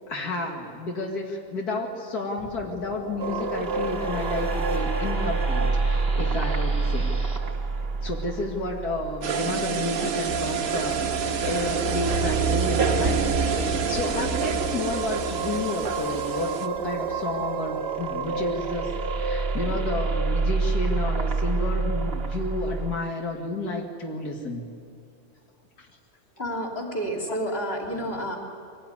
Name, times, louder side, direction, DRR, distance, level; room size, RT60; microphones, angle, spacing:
voice 1, 0.1-7.4 8.0-11.0 11.4-24.7 25.8-25.9, left 2 dB, 85° left, 0 dB, 2.6 m, -31 dB
sound 1, 2.4-7.4, equal, 5° left, 1.9 m, -42 dB
sound 2, 3.2-9.9 10.3-22.9, right 4 dB, 45° right, 1.3 m, -28 dB
sound 3, 9.2-16.7, right 6 dB, 70° right, 1.5 m, -28 dB
voice 2, 26.4-28.4, equal, 40° left, -1 dB, 3.6 m, -30 dB
23.5 x 17.5 x 9.8 m, 2.7 s
omnidirectional pair, 1.6 m